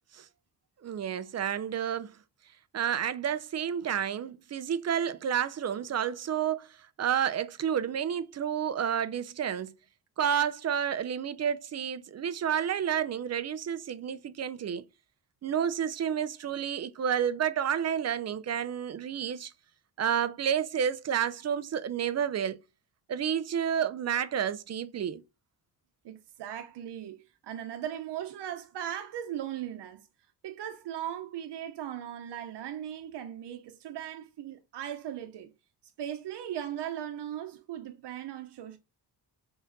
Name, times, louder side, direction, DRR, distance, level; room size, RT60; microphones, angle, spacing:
voice 1, 0.8-2.2 2.7-6.7 7.0-9.7 10.2-14.8 15.4-19.5 20.0-22.6 23.1-25.2, right 8 dB, 40° right, 0.5 m, -30 dB
voice 2, 26.0-30.0 30.4-35.5 36.0-38.8, right 10 dB, 85° right, 0.9 m, -38 dB
6.3 x 3.9 x 3.9 m
wide cardioid pair, 180°, 40 cm